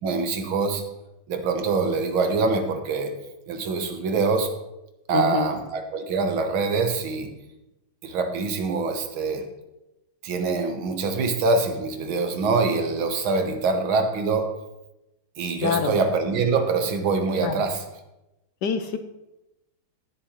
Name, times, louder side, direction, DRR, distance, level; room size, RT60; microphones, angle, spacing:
voice 1, 0.0-0.8 1.3-3.2 3.5-4.5 5.1-7.4 8.0-9.5 10.2-14.5 15.4-17.8, right 4 dB, 90° right, 6 dB, 2.0 m, -24 dB
voice 2, 5.1-5.5 15.6-16.0 17.4-17.6 18.6-19.0, left 7 dB, 65° left, 8 dB, 1.2 m, -25 dB
17.0 x 7.5 x 3.2 m, 0.95 s
omnidirectional pair, 2.2 m